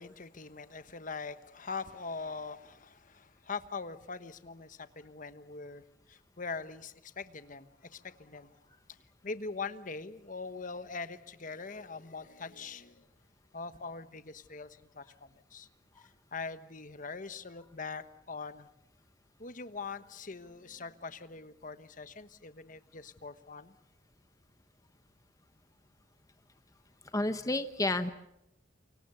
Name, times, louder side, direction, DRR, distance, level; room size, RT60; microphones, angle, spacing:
voice 1, 0.0-8.6 9.2-13.1 13.5-15.7 16.0-18.7 19.4-23.7, left 4 dB, 45° left, 11 dB, 1.2 m, -42 dB
voice 2, 27.1-28.1, left 2 dB, 20° left, 9 dB, 1.0 m, -30 dB
28.0 x 24.5 x 6.9 m, 0.83 s
head